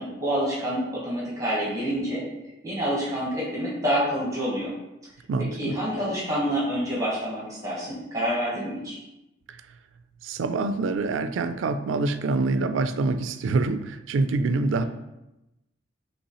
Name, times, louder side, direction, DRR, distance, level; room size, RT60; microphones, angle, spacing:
voice 1, 0.0-2.2 2.6-4.7 5.5-9.0, equal, 15° right, -7 dB, 1.2 m, -27 dB
voice 2, 5.3-5.8 9.5-9.6 10.2-14.8, right 3 dB, 80° right, 11 dB, 0.3 m, -25 dB
5.4 x 3.2 x 3.0 m, 0.93 s
head